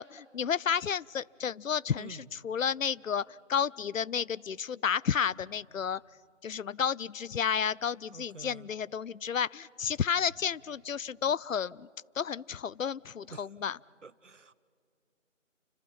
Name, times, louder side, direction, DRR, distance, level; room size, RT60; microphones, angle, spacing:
voice 1, 0.0-6.0 6.4-11.9 12.2-13.8, left 7 dB, 85° left, 22 dB, 0.6 m, -31 dB
voice 2, 2.0-2.3 8.1-8.7 13.3-13.5 14.0-14.5, right 4 dB, 70° right, 17 dB, 0.9 m, -48 dB
29.0 x 26.0 x 5.7 m, 2.2 s
figure-of-eight pair, 180°, 39 cm